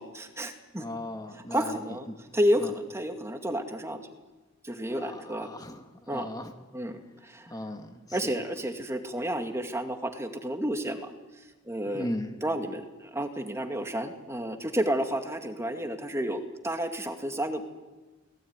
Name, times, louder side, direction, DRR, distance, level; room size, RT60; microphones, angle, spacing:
voice 1, 0.0-0.8 1.5-2.1 2.3-4.0 4.6-5.5 6.1-6.3 6.7-7.5 8.1-11.1 11.7-12.1 12.4-17.6, equal, 15° right, 5 dB, 2.2 m, -31 dB
voice 2, 0.8-1.8 2.1-2.2 2.6-2.7 5.0-6.5 7.5-8.3 11.9-12.4, left 1 dB, 20° left, 5 dB, 1.8 m, -37 dB
29.5 x 20.0 x 9.6 m, 1.2 s
head